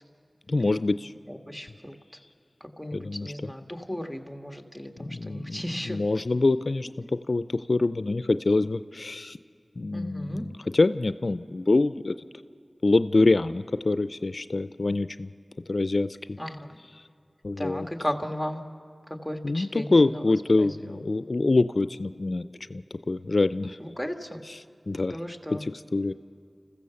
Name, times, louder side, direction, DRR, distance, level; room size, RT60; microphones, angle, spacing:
voice 1, 0.5-1.1 2.9-3.3 5.1-9.4 9.8-10.5 10.7-12.2 12.8-15.3 15.7-16.4 17.4-17.9 19.4-23.8 24.9-25.2 25.5-26.1, left 2 dB, 70° left, 12 dB, 0.4 m, -25 dB
voice 2, 1.3-1.9 2.6-6.0 7.0-7.1 9.9-10.5 16.4-16.8 17.6-18.6 19.2-21.0 23.8-24.4 25.1-25.6, equal, ahead, 4 dB, 1.6 m, -35 dB
29.5 x 15.0 x 6.9 m, 2.4 s
wide cardioid pair, 40°, 0 cm